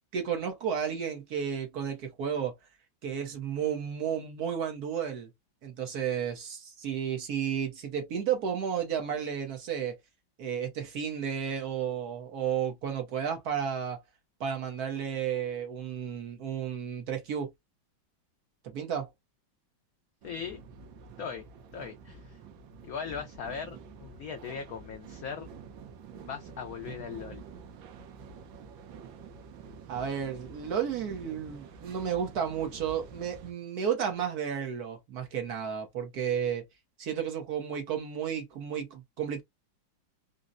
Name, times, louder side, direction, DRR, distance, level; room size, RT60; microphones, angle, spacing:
voice 1, 0.1-2.5 3.0-5.3 5.6-10.0 10.4-14.0 14.4-17.5 18.6-19.1 29.9-36.6 37.0-39.4, right 8 dB, 60° right, 1.2 m, -32 dB
voice 2, 20.2-20.6 21.2-21.4 21.7-22.4 22.8-25.5 26.2-27.4, left 6 dB, 85° left, 0.8 m, -39 dB
sound 1, 20.2-33.5, right 5 dB, 80° right, 1.4 m, -48 dB
4.0 x 2.1 x 2.4 m
omnidirectional pair, 2.2 m